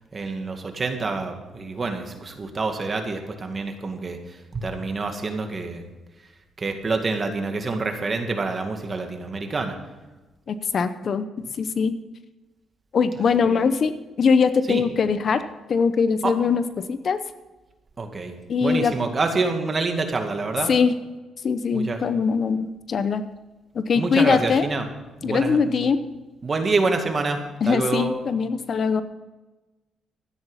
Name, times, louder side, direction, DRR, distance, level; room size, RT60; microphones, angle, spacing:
voice 1, 0.1-5.9 6.6-9.8 13.1-13.6 14.7-14.8 16.2-16.3 18.0-18.4 18.6-20.8 21.7-22.0 23.9-24.9 25.2-25.9 26.4-28.1, right 3 dB, 35° right, 5 dB, 2.1 m, -27 dB
voice 2, 10.5-11.3 11.6-11.9 12.9-13.9 14.2-15.4 15.7-16.6 16.9-17.2 18.5-18.9 20.7-20.9 21.4-23.2 23.7-24.7 25.2-26.0 27.6-29.0, left 5 dB, 50° left, 12 dB, 0.8 m, -21 dB
13.0 x 9.8 x 5.6 m, 1.1 s
cardioid pair, 90°, 0 cm